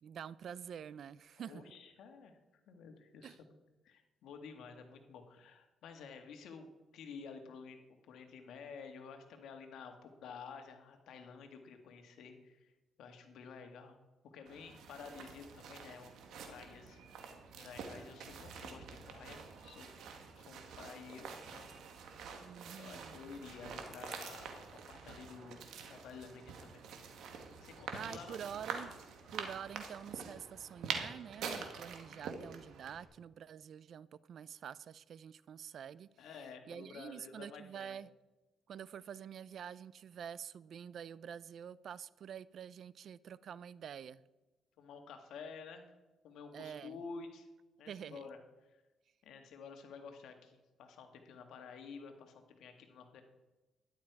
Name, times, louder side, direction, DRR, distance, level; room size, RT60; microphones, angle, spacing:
voice 1, 0.0-1.7 3.2-3.4 22.4-23.2 27.9-28.9 29.3-36.1 36.7-38.1 38.7-44.2 46.5-47.0 47.9-48.2, right 8 dB, 60° right, 0.4 m, -47 dB
voice 2, 1.4-2.4 2.7-3.6 3.8-7.8 8.1-12.7 13.0-14.0 14.2-16.1 16.5-17.0 17.5-20.0 20.4-21.7 22.7-24.6 24.9-26.9 27.6-28.4 36.2-38.0 44.8-45.9 46.2-47.5 47.8-48.4 48.7-48.8 49.2-53.2, left 5 dB, 80° left, 1.8 m, -51 dB
sound 1, 14.5-33.0, right 6 dB, 80° right, 1.9 m, -46 dB
13.0 x 11.0 x 4.8 m
cardioid pair, 90°, 0 cm